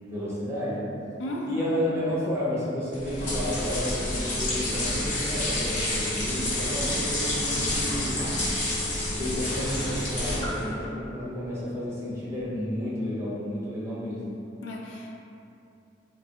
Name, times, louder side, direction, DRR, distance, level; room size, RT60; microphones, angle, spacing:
voice 1, 0.0-1.0 1.5-8.3 9.2-14.4, left 1 dB, 15° right, -8 dB, 0.6 m, -31 dB
voice 2, 1.2-1.7 7.4-7.8 14.6-15.2, left 1 dB, 85° left, -1 dB, 0.4 m, -35 dB
sound 1, 2.9-10.7, left 1 dB, 40° left, 0.8 m, -29 dB
3.2 x 2.2 x 2.8 m, 2.7 s
head